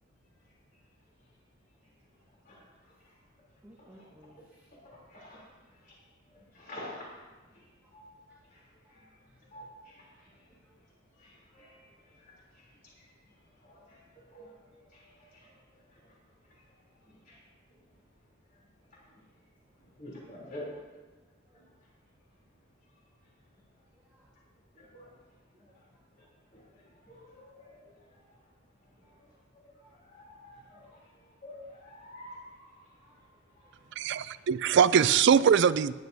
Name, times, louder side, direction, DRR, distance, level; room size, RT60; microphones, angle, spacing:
voice 1, 2.4-3.2 3.8-4.1 4.8-6.0 6.3-7.1 7.5-9.2 9.4-10.8 11.1-13.1 13.4-16.1 16.5-16.6 17.0-17.4 18.5-18.6 18.9-19.3 19.8-20.7 21.5-21.7 24.7-25.1 25.6-25.9 26.2-28.4 29.0-34.4, left 1 dB, 45° left, 3.2 m, -51 dB
voice 2, 3.6-4.8 7.3-7.9 8.3-8.4 8.8-9.0 9.3-9.6 10.1-10.2 10.6-10.8 14.1-16.3 17.3-17.4 19.1-19.2 20.6-20.8 21.2-21.6 23.9-24.4 25.5-26.3 27.0-27.1 27.4-27.5 28.1-28.2 29.0-29.2 29.8-30.0 31.0-31.1 33.0-33.2 33.6-33.9 35.6-35.7, right 1 dB, 10° right, 1.1 m, -63 dB
voice 3, 34.0-35.9, right 7 dB, 60° right, 0.4 m, -22 dB
18.5 x 10.5 x 2.7 m
head